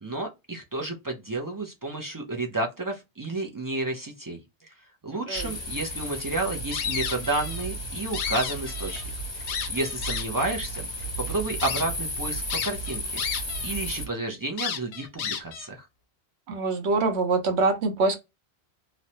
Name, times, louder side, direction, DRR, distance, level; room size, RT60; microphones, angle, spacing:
voice 1, 0.0-4.4 5.0-10.9 11.2-15.9, right 2 dB, 30° right, 0.3 m, -31 dB
voice 2, 5.1-5.5 16.5-18.2, right 3 dB, 80° right, 1.0 m, -25 dB
sound 1, 5.3-14.1, equal, 25° left, 0.9 m, -34 dB
sound 2, 6.7-7.7 8.0-9.0 9.5-10.5 11.0-11.1 11.6-11.8 12.5-13.7 14.0-14.1 14.6-15.7, left 7 dB, 80° left, 0.9 m, -32 dB
3.0 x 2.0 x 2.7 m
omnidirectional pair, 1.1 m